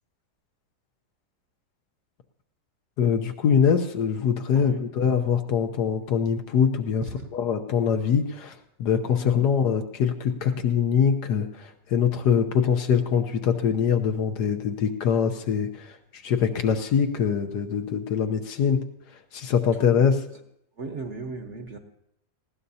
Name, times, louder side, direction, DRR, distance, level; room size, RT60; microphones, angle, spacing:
voice 1, 3.0-7.0 7.3-16.0 16.2-18.8 19.3-20.2, left 7 dB, 75° left, 5 dB, 1.4 m, -23 dB
voice 2, 4.5-4.8 7.0-7.3 9.3-9.5 20.8-21.8, right 3 dB, 50° right, 5 dB, 1.2 m, -37 dB
19.5 x 15.5 x 2.8 m, 0.78 s
omnidirectional pair, 1.7 m